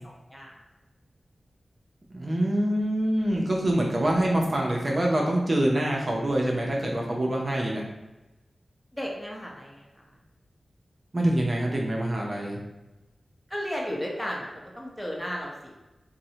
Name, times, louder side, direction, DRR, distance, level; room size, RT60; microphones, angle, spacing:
voice 1, 2.1-7.8 11.1-12.6, right 1 dB, 45° right, -1 dB, 0.5 m, -25 dB
voice 2, 8.9-9.8 13.5-15.7, equal, 10° left, -2 dB, 0.8 m, -34 dB
3.8 x 2.1 x 2.8 m, 1.0 s
cardioid pair, 50°, 0 cm